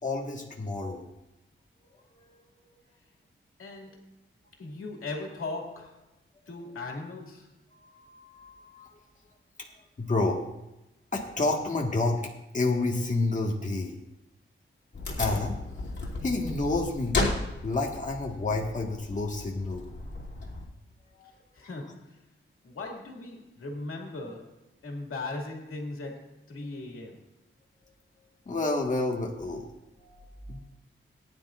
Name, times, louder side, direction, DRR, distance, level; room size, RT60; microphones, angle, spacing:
voice 1, 0.0-1.0 2.2-2.4 7.8-9.0 10.0-10.4 11.1-14.0 15.2-15.6 16.0-19.9 21.2-21.3 28.4-29.7 30.0-30.6, left 2 dB, 35° left, -1 dB, 1.6 m, -30 dB
voice 2, 3.6-4.1 4.6-6.0 6.5-7.5 21.2-22.2 22.6-27.3, left 2 dB, 90° left, 0 dB, 2.3 m, -39 dB
Wood, 14.9-20.7, left 2 dB, 55° left, 2.9 m, -34 dB
19.5 x 10.5 x 2.5 m, 0.92 s
wide cardioid pair, 110°, 21 cm